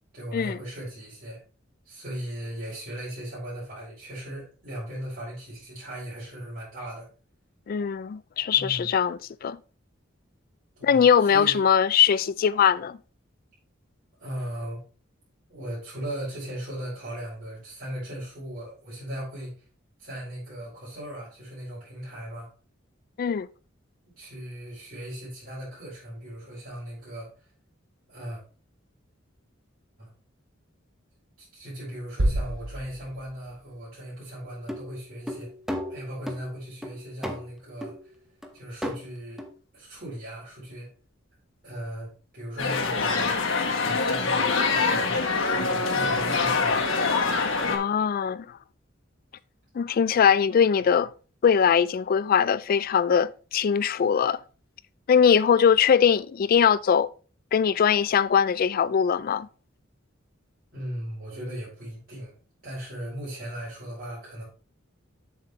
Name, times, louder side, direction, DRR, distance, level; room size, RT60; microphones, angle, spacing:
voice 1, 0.1-1.4 1.8-7.1 8.5-8.9 10.8-11.7 14.2-14.8 15.5-19.6 20.0-22.5 24.1-27.3 28.1-28.4 30.0-30.1 31.4-35.5 35.9-38.1 38.5-39.4 39.7-40.9 41.6-43.4 43.8-46.9 60.7-62.3 62.6-64.4, right 1 dB, 50° right, 4.8 m, -38 dB
voice 2, 7.7-9.6 10.8-13.0 23.2-23.5 47.7-48.6 49.7-51.1 51.4-54.4 55.1-57.1 57.5-59.5, left 7 dB, 45° left, 0.3 m, -21 dB
sound 1, 32.2-34.0, right 1 dB, 80° right, 1.1 m, -29 dB
sound 2, 34.7-36.4 36.8-37.5 37.8-38.0 38.4-38.5 38.8-39.0 39.4-39.5, equal, ahead, 1.0 m, -34 dB
sound 3, 42.6-47.8, left 4 dB, 80° left, 1.6 m, -24 dB
7.5 x 7.4 x 3.2 m
head